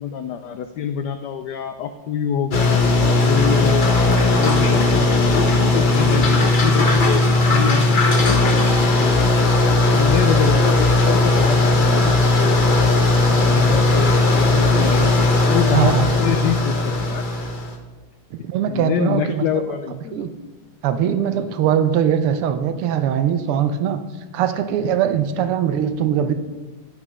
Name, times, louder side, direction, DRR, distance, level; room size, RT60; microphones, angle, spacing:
voice 1, 0.0-2.8 3.2-9.1 9.7-15.1 15.5-17.2 18.7-20.3 25.4-25.5, left 8 dB, 85° left, 9 dB, 0.9 m, -26 dB
sound 1, 2.5-17.8, left 2 dB, 55° left, 0.5 m, -17 dB
voice 2, 15.7-16.1 18.3-20.3 20.8-24.0 24.3-26.3, right 9 dB, 90° right, 10 dB, 1.6 m, -21 dB
10.0 x 5.5 x 6.0 m, 1.2 s
omnidirectional pair, 2.4 m